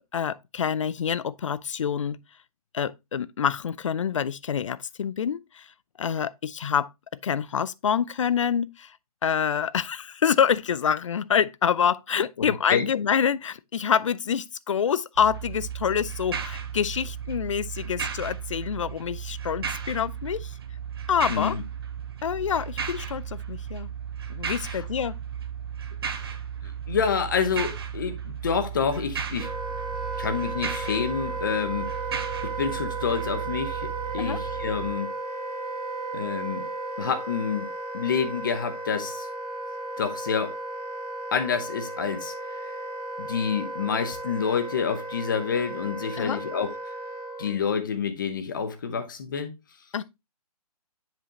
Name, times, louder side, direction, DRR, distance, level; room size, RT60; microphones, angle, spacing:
voice 1, 0.1-2.2 2.7-5.7 6.0-6.9 7.2-9.0 9.2-20.5 21.1-21.6 22.2-23.9 24.3-25.2 34.2-34.4 46.2-46.4 49.9-50.0, left 7 dB, 55° left, 0.4 m, -26 dB
voice 2, 12.4-12.9 21.3-21.6 26.6-29.5 30.2-31.8 32.4-35.1 36.1-36.6 37.0-37.7 37.9-39.3 40.0-40.6 41.3-42.3 43.2-46.7 47.4-49.5, left 6 dB, 35° left, 0.8 m, -28 dB
sound 1, 15.2-34.9, right 7 dB, 40° right, 0.7 m, -35 dB
Wind instrument woodwind instrument, 29.4-47.6, right 2 dB, 10° right, 1.4 m, -35 dB
7.4 x 5.0 x 2.8 m
hypercardioid pair, 175°, 20 cm